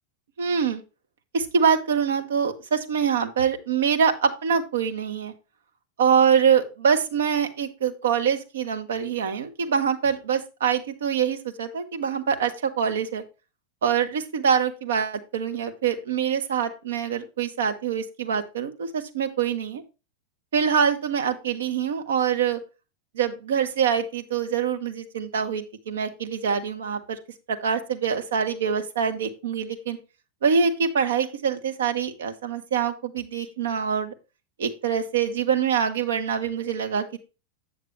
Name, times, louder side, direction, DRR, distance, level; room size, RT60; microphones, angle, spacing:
voice 1, 0.4-0.8 1.3-5.3 6.0-13.2 13.8-19.8 20.5-22.6 23.1-27.2 27.5-30.0 30.4-34.1 34.6-37.2, right 7 dB, 65° right, 6 dB, 1.2 m, -24 dB
8.6 x 6.5 x 3.2 m, 0.30 s
figure-of-eight pair, 90°, 0 cm